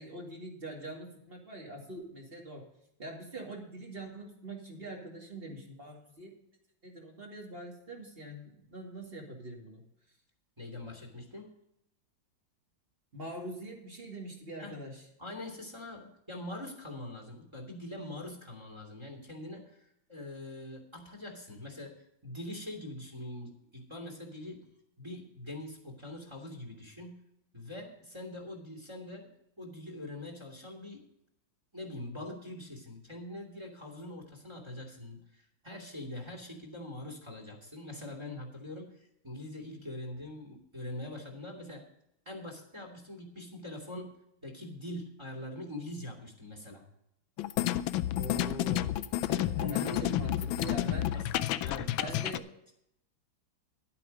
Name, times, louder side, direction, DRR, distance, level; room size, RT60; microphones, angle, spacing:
voice 1, 0.0-2.6 3.0-6.3 6.8-9.8 13.1-15.0 48.2-49.0 49.6-51.2 52.0-52.5, right 1 dB, 30° right, 0 dB, 2.3 m, -43 dB
voice 2, 10.6-11.5 14.6-14.8 15.2-24.7 25.0-27.1 27.5-29.3 29.6-31.0 31.7-41.9 42.3-44.1 44.4-46.8 49.3-50.2 50.8-51.3 51.6-52.3, left 1 dB, 15° right, 3 dB, 2.4 m, -43 dB
sound 1, 47.4-52.4, left 13 dB, 85° left, 1.3 m, -30 dB
11.5 x 8.6 x 5.2 m, 0.80 s
omnidirectional pair, 2.1 m